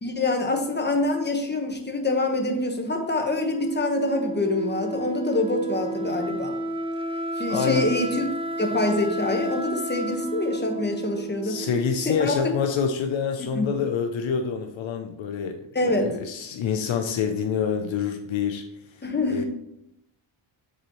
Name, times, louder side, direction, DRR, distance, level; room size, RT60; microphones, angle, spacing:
voice 1, 0.0-6.5 7.4-8.3 8.6-11.6 12.0-12.5 13.5-13.7 15.7-16.2 19.0-19.4, left 2 dB, 20° left, 3 dB, 1.3 m, -25 dB
Wind instrument woodwind instrument, 3.5-12.2, right 2 dB, 10° right, 0.5 m, -32 dB
voice 2, 7.5-7.9 11.4-18.6 19.3-19.4, left 6 dB, 70° left, 6 dB, 0.7 m, -27 dB
9.4 x 4.2 x 3.1 m, 0.83 s
cardioid pair, 70°, 48 cm